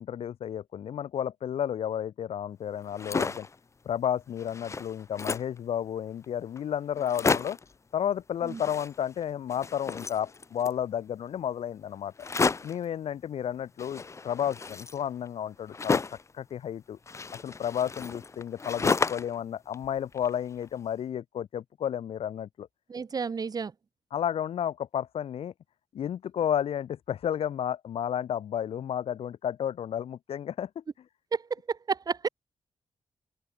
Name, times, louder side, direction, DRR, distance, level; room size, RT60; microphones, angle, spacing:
voice 1, 0.0-3.5 3.8-7.6 7.9-12.1 12.6-16.0 16.3-17.0 17.4-22.7 24.1-25.5 25.9-30.8, left 9 dB, 80° left, 1.0 m, -32 dB
sound 1, 2.8-3.5 4.0-4.1 4.4-5.6 6.2-6.3 6.6-6.7 7.0-7.7 8.4-9.2 9.5-10.8 12.2-12.8 13.8-16.3 17.1-19.4 19.7-20.6, left 4 dB, 30° left, 1.1 m, -32 dB
voice 2, 22.9-23.7 31.3-31.4 31.7-32.3, right 5 dB, 40° right, 1.7 m, -31 dB
open air
wide cardioid pair, 135°, 10 cm